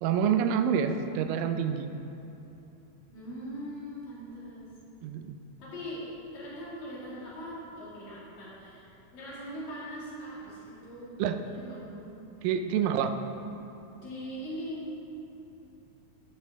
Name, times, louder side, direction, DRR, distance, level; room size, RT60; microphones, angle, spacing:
voice 1, 0.0-1.9 5.0-5.4 11.2-11.4 12.4-13.1, right 8 dB, 85° right, 7 dB, 2.2 m, -27 dB
voice 2, 3.1-4.7 5.6-11.1 11.6-12.2 14.0-14.9, equal, 60° left, -8 dB, 3.5 m, -41 dB
15.5 x 5.5 x 3.5 m, 2.9 s
omnidirectional pair, 4.0 m